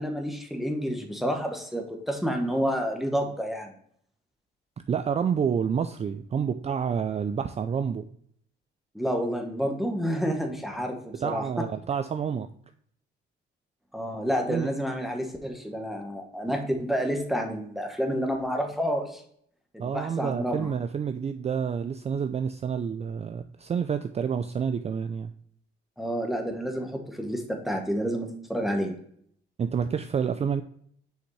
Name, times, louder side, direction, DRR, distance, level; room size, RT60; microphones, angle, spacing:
voice 1, 0.0-3.7 8.9-11.7 13.9-19.2 19.7-20.7 26.0-29.0, equal, ahead, 3 dB, 1.2 m, -29 dB
voice 2, 4.9-8.1 11.2-12.5 14.5-14.7 19.8-25.3 29.6-30.6, right 7 dB, 35° right, 8 dB, 0.4 m, -28 dB
6.5 x 5.1 x 3.2 m, 0.65 s
cardioid pair, 90°, 20 cm